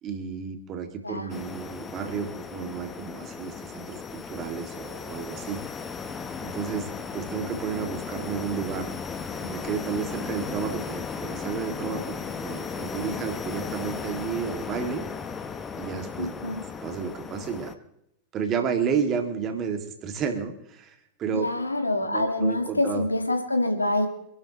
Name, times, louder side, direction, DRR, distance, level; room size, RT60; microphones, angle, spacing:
voice 1, 0.0-5.6 6.4-8.9 9.4-15.1 15.8-16.5 16.8-17.7 18.3-21.5 22.0-23.1, right 6 dB, 30° right, 6 dB, 2.5 m, -32 dB
voice 2, 1.0-1.4 16.2-16.6 21.3-24.1, left 1 dB, 85° left, 6 dB, 2.0 m, -26 dB
sound 1, 1.3-17.7, left 5 dB, 20° left, 1.2 m, -36 dB
26.5 x 12.0 x 3.2 m, 0.80 s
figure-of-eight pair, 90°, 0 cm